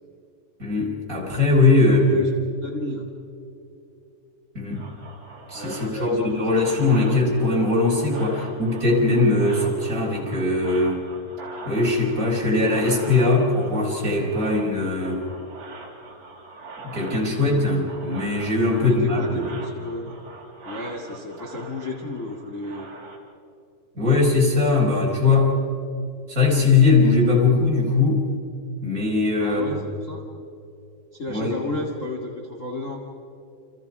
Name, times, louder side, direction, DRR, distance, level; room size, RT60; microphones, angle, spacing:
voice 1, 0.6-2.2 4.5-4.8 5.5-11.0 11.6-15.2 16.8-19.5 23.9-25.6 26.3-28.3 28.8-29.8 31.3-31.6, left 3 dB, 20° right, -2 dB, 5.1 m, -20 dB
voice 2, 1.8-3.1 5.5-7.7 18.8-20.2 20.6-22.9 29.4-30.2 31.1-32.3 32.6-33.0, left 2 dB, 35° left, -1 dB, 1.2 m, -33 dB
sound 1, 4.7-23.2, right 3 dB, 40° right, 4.7 m, -42 dB
29.5 x 28.0 x 4.8 m, 2.6 s
omnidirectional pair, 5.1 m